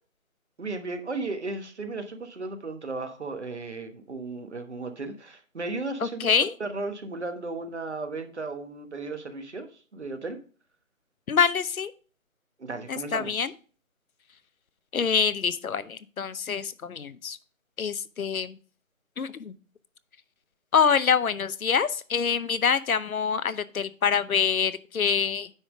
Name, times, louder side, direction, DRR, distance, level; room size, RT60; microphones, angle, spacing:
voice 1, 0.6-6.3 6.6-10.4 12.6-13.5, right 3 dB, 55° right, 7 dB, 1.2 m, -35 dB
voice 2, 6.2-6.5 11.3-11.9 12.9-13.5 14.9-17.4 17.8-18.6 19.2-19.5 20.7-25.5, left 6 dB, 85° left, 15 dB, 0.7 m, -25 dB
9.6 x 3.7 x 4.8 m, 0.39 s
figure-of-eight pair, 175°, 41 cm